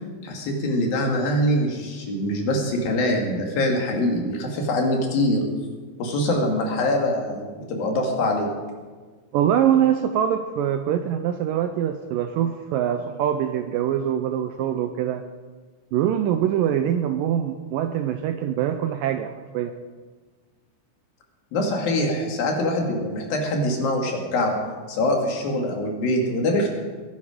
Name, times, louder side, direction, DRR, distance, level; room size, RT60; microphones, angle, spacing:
voice 1, 0.2-5.4 6.0-8.5 21.5-24.5 24.9-26.7, left 1 dB, 65° left, 1 dB, 3.8 m, -24 dB
voice 2, 9.3-15.2 15.9-19.8, right 10 dB, 85° right, 8 dB, 2.0 m, -23 dB
21.0 x 10.5 x 5.1 m, 1.4 s
omnidirectional pair, 4.5 m